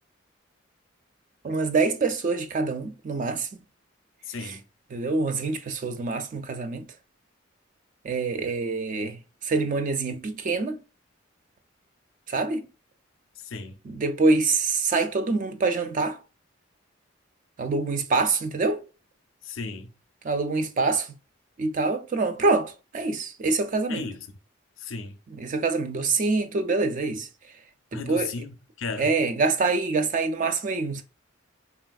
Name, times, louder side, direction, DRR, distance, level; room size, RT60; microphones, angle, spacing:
voice 1, 1.4-3.5 4.9-6.8 8.0-10.8 12.3-12.7 13.9-16.2 17.6-18.8 20.2-21.1 21.6-24.0 25.4-27.3 27.9-28.3 29.0-31.0, right 3 dB, 40° right, 0.4 m, -25 dB
voice 2, 4.2-4.6 13.4-13.8 19.4-19.9 23.9-24.3 24.8-25.2 27.9-29.1, left 4 dB, 75° left, 0.5 m, -35 dB
3.2 x 2.5 x 2.3 m
head